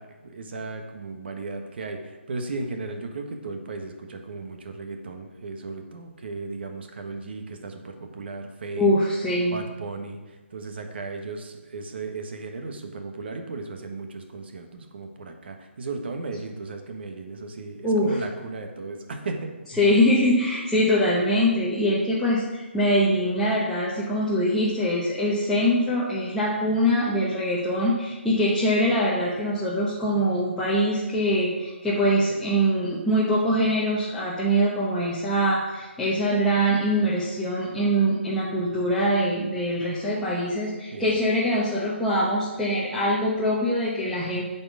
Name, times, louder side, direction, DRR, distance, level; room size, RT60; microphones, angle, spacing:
voice 1, 0.0-8.9 9.5-19.5 40.9-41.2, right 3 dB, 55° right, 5 dB, 1.3 m, -35 dB
voice 2, 8.8-9.6 17.8-18.2 19.8-44.5, equal, ahead, -10 dB, 0.9 m, -23 dB
8.6 x 4.5 x 7.1 m, 1.2 s
hypercardioid pair, 160°, 7 cm